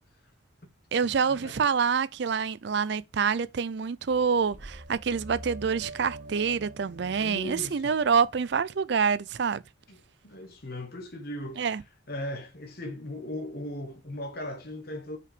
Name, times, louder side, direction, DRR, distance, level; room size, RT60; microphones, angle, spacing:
voice 1, 0.9-9.6 11.6-11.8, right 6 dB, 55° right, 0.4 m, -26 dB
sound 1, 4.1-8.8, right 1 dB, 40° right, 1.3 m, -46 dB
voice 2, 7.2-8.0 9.9-11.7 12.1-15.2, left 1 dB, 50° left, 1.3 m, -38 dB
5.6 x 5.1 x 5.0 m
head